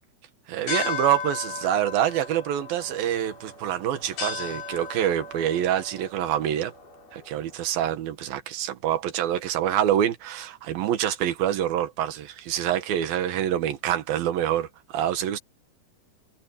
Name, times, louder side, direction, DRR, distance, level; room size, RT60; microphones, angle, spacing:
voice 1, 0.5-6.7 7.1-15.4, right 11 dB, 70° right, 3.2 m, -26 dB
sound 1, 0.7-7.5, left 5 dB, 65° left, 8.0 m, -36 dB
omnidirectional pair, 4.7 m